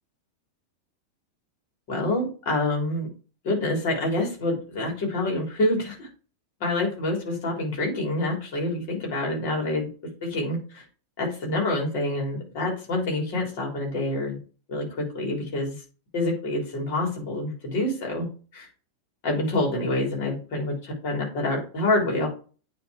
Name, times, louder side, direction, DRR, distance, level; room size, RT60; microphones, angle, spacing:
voice 1, 1.9-3.1 3.4-6.1 6.6-9.9 10.2-10.8 11.2-14.4 14.7-15.8 16.1-18.3 18.5-18.7 19.2-22.3, left 2 dB, 50° left, 0 dB, 3.5 m, -27 dB
9.3 x 3.8 x 4.8 m, 0.38 s
figure-of-eight pair, 90°, 0 cm